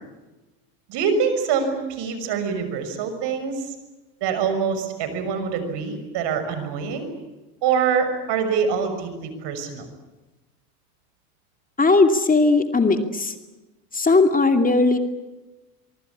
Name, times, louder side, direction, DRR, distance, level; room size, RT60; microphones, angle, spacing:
voice 1, 0.9-3.7 4.2-7.1 7.6-9.9, right 6 dB, 60° right, 9 dB, 6.3 m, -25 dB
voice 2, 11.8-13.3 13.9-15.0, left 3 dB, 20° left, 6 dB, 2.6 m, -18 dB
24.5 x 23.5 x 8.6 m, 1.1 s
hypercardioid pair, 90°, 47 cm